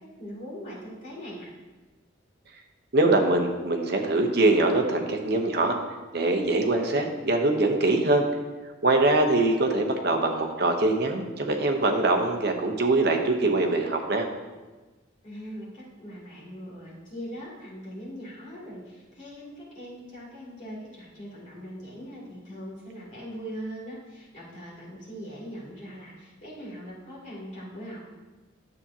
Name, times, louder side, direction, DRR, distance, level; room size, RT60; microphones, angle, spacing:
voice 1, 0.0-1.5 15.2-28.0, equal, 35° left, -7 dB, 2.8 m, -41 dB
voice 2, 2.9-5.7 6.1-8.3 8.8-14.3, right 2 dB, 50° right, 3 dB, 0.9 m, -23 dB
9.7 x 7.3 x 2.8 m, 1.2 s
head